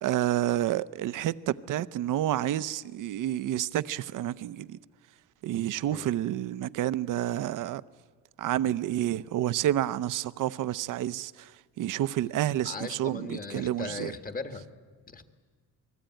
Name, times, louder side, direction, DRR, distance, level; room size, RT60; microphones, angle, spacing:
voice 1, 0.0-4.8 5.4-7.8 8.4-14.2, right 12 dB, 65° right, 0.8 m, -29 dB
voice 2, 12.6-14.7 15.1-15.3, left 4 dB, 25° left, 1.6 m, -38 dB
28.0 x 20.5 x 9.1 m
cardioid pair, 140°, 34 cm